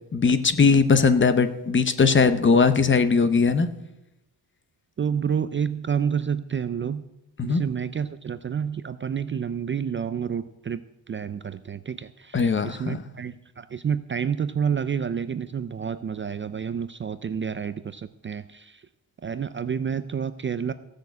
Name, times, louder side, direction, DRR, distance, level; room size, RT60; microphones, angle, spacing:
voice 1, 0.1-3.7 7.4-7.6 12.3-13.0, left 5 dB, 30° left, 11 dB, 0.8 m, -19 dB
voice 2, 5.0-7.0 7.4-10.8 11.1-18.9 19.2-20.7, right 7 dB, 30° right, 13 dB, 0.4 m, -29 dB
15.5 x 6.5 x 8.2 m, 0.93 s
wide cardioid pair, 165°, 38 cm